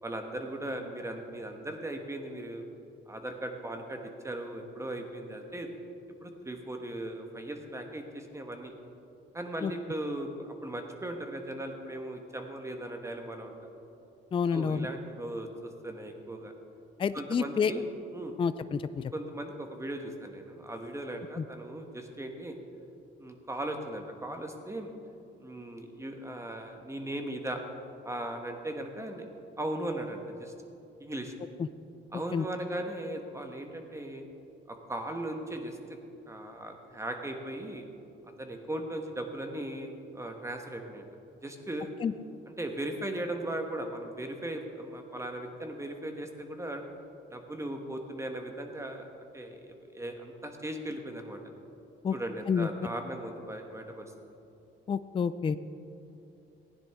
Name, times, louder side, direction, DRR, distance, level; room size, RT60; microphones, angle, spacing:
voice 1, 0.0-2.6 3.1-5.7 6.2-8.7 9.3-13.7 14.5-16.5 17.1-18.4 19.1-22.5 23.2-24.9 25.4-27.6 28.0-29.3 29.6-30.5 31.0-31.3 32.1-34.3 34.7-35.8 36.3-37.9 38.4-41.1 41.4-41.9 42.5-46.8 47.3-49.1 49.3-51.4 52.1-54.1, right 1 dB, 15° right, 4 dB, 1.3 m, -38 dB
voice 2, 14.3-14.9 17.0-17.7 18.4-19.1 21.4-21.5 32.3-32.4 42.0-42.1 52.0-52.1 52.5-52.7 54.9-55.6, left 6 dB, 25° left, 13 dB, 0.3 m, -28 dB
15.5 x 10.0 x 3.6 m, 2.8 s
cardioid pair, 90°, 20 cm